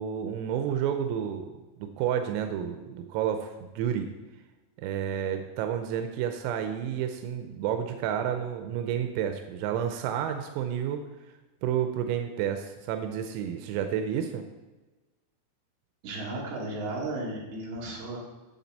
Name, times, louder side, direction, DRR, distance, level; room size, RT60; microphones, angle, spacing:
voice 1, 0.0-1.5 1.8-4.1 4.8-11.1 11.6-14.4, right 9 dB, 90° right, 6 dB, 3.4 m, -30 dB
voice 2, 16.0-18.2, right 2 dB, 60° right, -5 dB, 4.5 m, -34 dB
11.5 x 7.9 x 4.1 m, 1.2 s
omnidirectional pair, 5.9 m